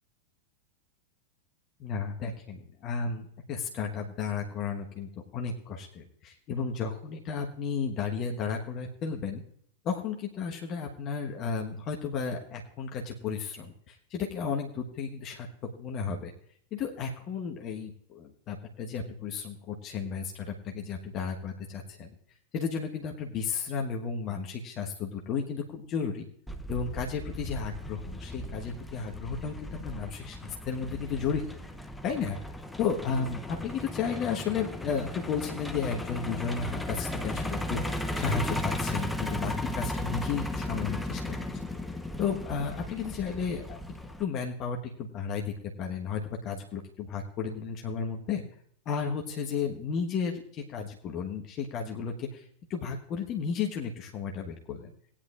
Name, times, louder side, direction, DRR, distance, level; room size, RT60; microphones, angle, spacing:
voice 1, 1.8-9.4 9.8-15.5 15.8-16.3 16.7-22.1 22.5-26.3 26.7-31.6 32.0-32.4 32.8-41.3 42.2-43.8 44.2-48.4 48.8-54.9, left 6 dB, 35° left, 1 dB, 1.3 m, -33 dB
Truck, 26.5-44.2, left 1 dB, 5° left, 0.8 m, -36 dB
18.0 x 10.0 x 2.5 m, 0.65 s
figure-of-eight pair, 90°, 0 cm